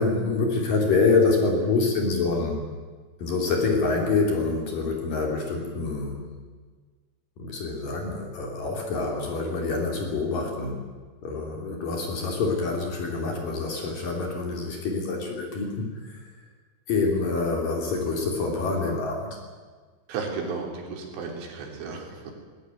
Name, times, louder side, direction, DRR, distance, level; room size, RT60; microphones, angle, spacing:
voice 1, 0.0-2.6 3.2-6.2 7.4-10.8 11.2-16.3 16.9-19.4, left 3 dB, 45° left, 1 dB, 4.1 m, -26 dB
voice 2, 20.1-22.3, right 4 dB, 70° right, 2 dB, 5.7 m, -34 dB
19.5 x 19.0 x 9.2 m, 1.5 s
omnidirectional pair, 5.9 m